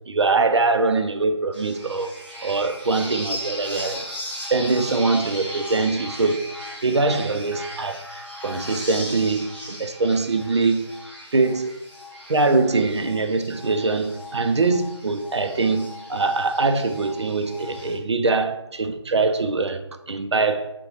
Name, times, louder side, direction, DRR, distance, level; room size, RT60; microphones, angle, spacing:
voice 1, 0.1-2.1 2.4-4.0 4.5-6.4 6.8-8.0 8.4-10.9 11.3-11.8 12.3-19.8 20.1-20.7, right 3 dB, 70° right, 0.4 m, -22 dB
sound 1, 1.5-17.9, equal, ahead, 0.5 m, -37 dB
6.0 x 2.3 x 2.8 m
figure-of-eight pair, 160°, 15 cm